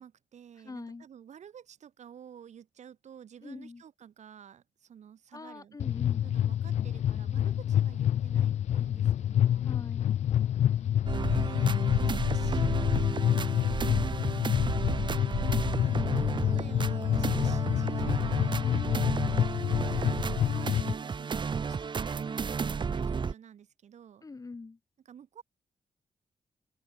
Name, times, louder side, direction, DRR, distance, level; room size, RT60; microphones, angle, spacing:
voice 1, 0.0-5.8 6.2-9.7 10.7-11.0 11.2-14.7 15.7-18.7 19.8-20.2 20.5-24.2 25.1-25.4, right 8 dB, 75° right, 4.4 m, -51 dB
voice 2, 0.6-1.1 3.4-3.8 5.3-6.3 9.6-10.1 18.6-19.0 24.2-24.8, left 3 dB, 30° left, 3.6 m, -43 dB
sound 1, 5.8-20.9, left 10 dB, 70° left, 0.4 m, -28 dB
sound 2, 11.1-23.3, right 5 dB, 40° right, 1.1 m, -33 dB
open air
wide cardioid pair, 120°, 12 cm